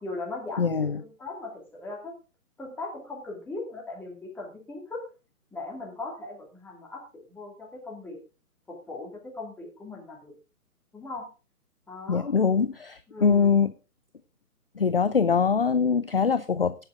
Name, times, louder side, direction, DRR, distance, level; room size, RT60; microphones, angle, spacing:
voice 1, 0.0-2.1 2.6-5.1 5.5-7.0 7.3-8.2 8.7-10.3 10.9-11.3 11.9-12.3 13.1-13.6, left 2 dB, 5° left, -2 dB, 2.6 m, -39 dB
voice 2, 0.6-1.0 12.1-13.7 14.8-16.8, left 5 dB, 40° left, 14 dB, 0.4 m, -23 dB
18.0 x 6.9 x 3.6 m, 0.32 s
figure-of-eight pair, 145°, 46 cm